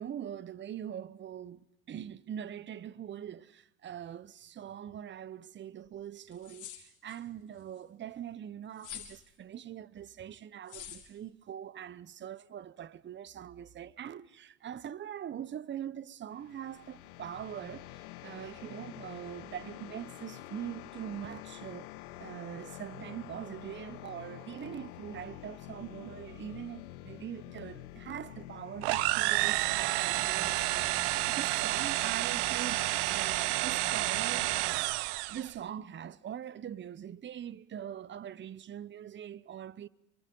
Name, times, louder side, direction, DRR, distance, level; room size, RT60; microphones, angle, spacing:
voice 1, 0.0-21.9 22.2-34.6 35.3-39.9, right 10 dB, 25° right, 0.8 m, -43 dB
sound 1, 5.9-6.0 6.3-7.2 8.8-9.2 10.7-11.1, left 10 dB, 40° left, 5.2 m, -45 dB
sound 2, 16.3-34.8, left 14 dB, 80° left, 1.4 m, -48 dB
sound 3, 28.8-35.5, right 21 dB, 60° right, 0.8 m, -30 dB
27.5 x 23.0 x 5.4 m
supercardioid pair, 105°, 44 cm